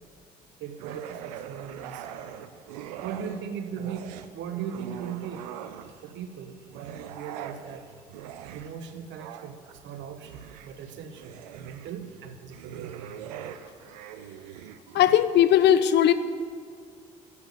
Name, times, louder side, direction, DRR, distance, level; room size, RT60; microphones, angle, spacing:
voice 1, 0.6-2.1 3.0-7.9 8.5-13.2, right 7 dB, 65° right, 8 dB, 1.2 m, -39 dB
sound 1, 0.8-3.5 3.7-6.1 6.6-15.3, right 10 dB, 80° right, 0.7 m, -42 dB
voice 2, 14.9-16.1, left 10 dB, 60° left, 13 dB, 0.8 m, -18 dB
12.0 x 8.6 x 8.6 m, 2.2 s
hypercardioid pair, 50°, 20 cm